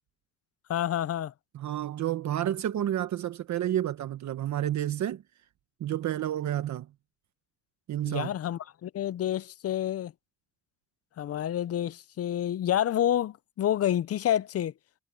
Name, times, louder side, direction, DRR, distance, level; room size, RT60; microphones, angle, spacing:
voice 1, 0.7-1.3 8.0-10.1 11.2-14.7, left 11 dB, 50° left, 0.6 m, -28 dB
voice 2, 1.5-5.2 5.8-6.9 7.9-8.3, right 12 dB, 65° right, 1.2 m, -30 dB
cardioid pair, 90°, 30 cm